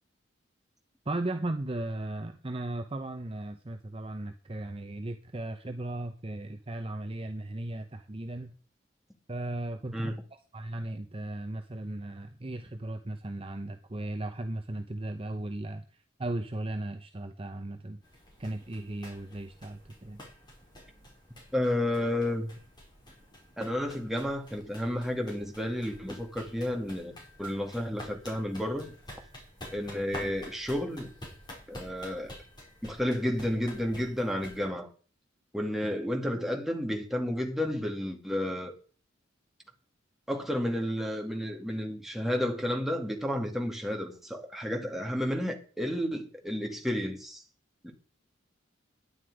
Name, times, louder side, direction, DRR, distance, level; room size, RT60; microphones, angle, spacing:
voice 1, 1.1-8.5 9.3-10.1 10.5-15.8 16.2-18.0 18.4-20.2, right 1 dB, 30° right, 0.8 m, -36 dB
sound 1, 18.0-34.7, left 1 dB, 25° left, 5.1 m, -49 dB
voice 2, 21.5-22.5 23.6-27.1 27.4-28.9 29.7-31.1 31.7-32.4 32.8-34.9 35.5-38.7 40.3-47.4 47.8-47.9, left 1 dB, ahead, 2.2 m, -31 dB
11.0 x 9.7 x 4.9 m
head